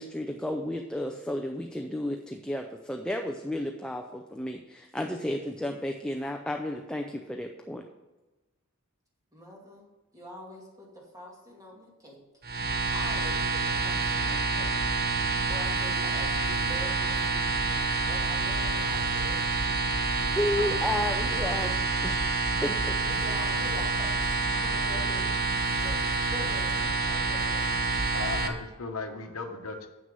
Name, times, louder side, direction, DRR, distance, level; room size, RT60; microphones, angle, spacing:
voice 1, 0.0-7.8 20.3-21.7 22.0-22.1 22.5-22.9, left 1 dB, 5° left, 3 dB, 0.4 m, -32 dB
voice 2, 9.3-9.8 10.1-12.2 12.9-14.7 15.5-19.7 20.3-20.9 21.2-21.8 23.0-26.0 26.3-27.8, equal, 15° right, -2 dB, 2.2 m, -44 dB
sound 1, 12.4-28.5, right 3 dB, 45° right, 0.9 m, -28 dB
voice 3, 28.1-29.9, left 3 dB, 70° left, 6 dB, 1.0 m, -36 dB
7.9 x 6.4 x 5.3 m, 1.1 s
head